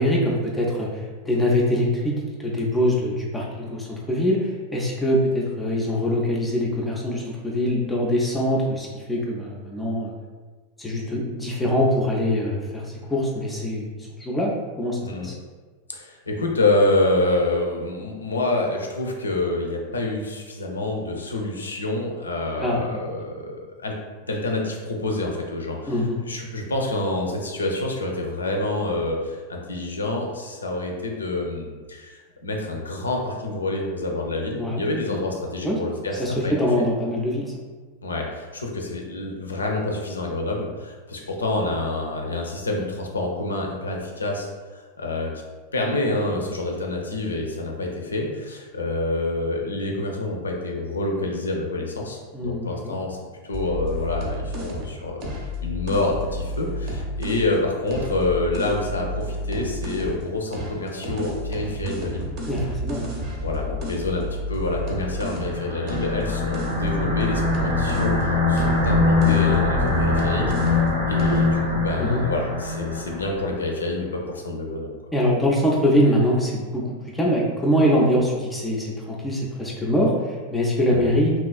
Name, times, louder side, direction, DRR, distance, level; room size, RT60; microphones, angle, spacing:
voice 1, 0.0-10.1 10.8-12.8 13.1-13.9 14.2-15.3 22.6-23.0 25.9-26.2 34.6-34.9 35.6-35.8 36.2-37.5 52.3-53.0 62.5-63.1 72.0-72.2 75.1-81.3, equal, 10° left, -3 dB, 0.4 m, -23 dB
voice 2, 15.9-24.0 24.2-36.9 38.0-44.5 44.7-45.3 45.7-53.2 53.4-55.2 55.6-62.3 63.0-70.7 71.1-74.9 80.9-81.1, left 2 dB, 75° left, 1 dB, 0.4 m, -27 dB
sound 1, 53.5-57.5 57.9-60.2 60.5-68.2 68.5-70.9 71.2-71.5, left 1 dB, 40° right, 0.6 m, -31 dB
sound 2, 65.0-73.6, left 3 dB, 90° right, 0.7 m, -23 dB
2.9 x 2.3 x 2.3 m, 1.4 s
figure-of-eight pair, 90°, 0 cm